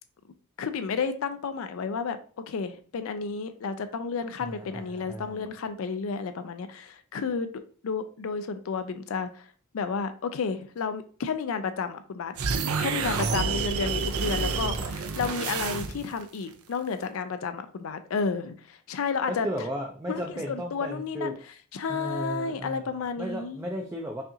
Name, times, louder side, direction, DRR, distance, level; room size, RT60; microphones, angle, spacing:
voice 1, 0.6-2.2 2.5-9.5 9.7-12.3 12.8-19.5 20.1-20.2 20.5-23.6, left 5 dB, 65° left, 0.4 m, -32 dB
voice 2, 4.4-5.5 13.0-13.6 14.5-14.8 19.3-21.4 21.9-22.9 23.2-24.2, equal, 15° right, 0.4 m, -35 dB
sound 1, 12.4-16.2, right 4 dB, 75° right, 0.5 m, -28 dB
5.5 x 2.4 x 2.7 m
head